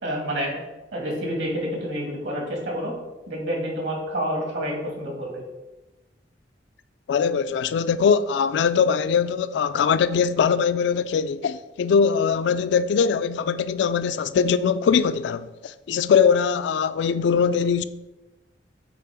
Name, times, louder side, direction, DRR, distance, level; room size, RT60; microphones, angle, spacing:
voice 1, 0.0-0.6 0.9-2.9 3.3-5.4, equal, 70° right, 2.1 m, -28 dB
voice 2, 7.1-17.9, left 6 dB, 70° left, 0.3 m, -21 dB
8.1 x 2.9 x 5.0 m
head